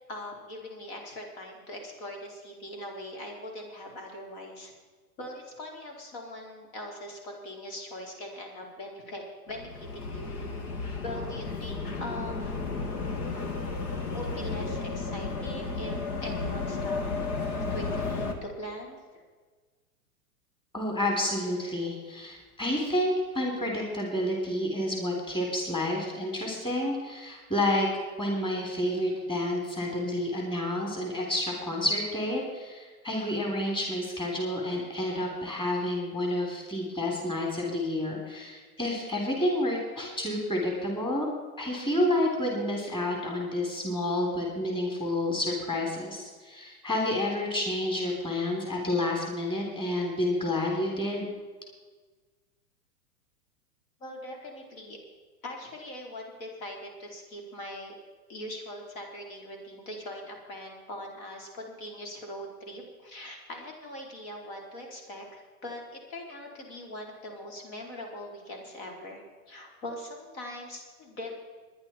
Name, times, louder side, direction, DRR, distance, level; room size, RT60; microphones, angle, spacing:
voice 1, 0.1-4.7 5.2-10.3 11.0-12.7 14.1-17.0 17.7-19.2 54.0-55.0 55.4-57.9 58.3-71.4, left 1 dB, 60° left, 1 dB, 4.4 m, -41 dB
sound 1, 9.5-18.3, left 4 dB, 80° left, 2.4 m, -33 dB
voice 2, 20.7-27.9 28.2-41.3 41.6-51.3, left 1 dB, 10° left, 0 dB, 3.6 m, -29 dB
21.0 x 10.5 x 4.5 m, 1.4 s
hypercardioid pair, 125°, 45 cm